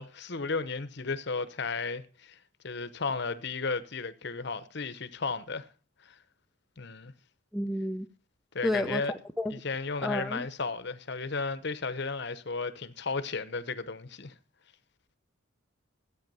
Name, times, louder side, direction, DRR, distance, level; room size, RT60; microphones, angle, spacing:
voice 1, 0.0-2.4 2.6-5.7 6.0-6.2 6.8-7.1 8.5-9.1 9.5-14.3, left 4 dB, 50° left, 0.9 m, -34 dB
voice 2, 7.5-8.1 8.6-9.6 10.0-10.5, left 1 dB, ahead, 0.5 m, -31 dB
13.5 x 8.6 x 5.5 m
head